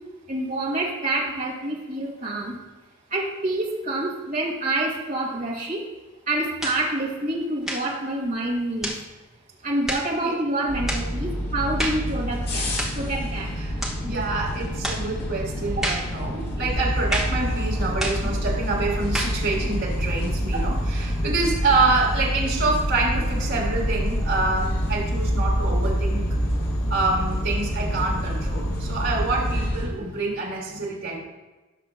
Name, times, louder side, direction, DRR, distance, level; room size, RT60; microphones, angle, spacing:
voice 1, 0.3-2.6 3.1-5.8 6.3-8.9 9.6-13.5 15.8-15.9 20.5-20.7 26.1-26.4 30.0-30.2, right 2 dB, 40° right, -3 dB, 1.9 m, -27 dB
sound 1, 6.6-6.8 7.6-7.9 8.8-9.0 9.9-10.1 10.9-11.1 11.8-12.1 12.8-13.0 13.8-14.0 14.8-15.1 15.8-16.1 17.1-17.4 18.0-18.3 19.1-19.4, equal, ahead, 1.2 m, -29 dB
sound 2, 10.7-29.9, equal, 50° left, 1.6 m, -28 dB
voice 2, 14.0-26.3 26.9-31.2, right 3 dB, 70° right, -3 dB, 2.9 m, -26 dB
Insect, 16.7-29.7, equal, 90° left, 1.2 m, -29 dB
17.5 x 6.5 x 2.2 m, 1.2 s
head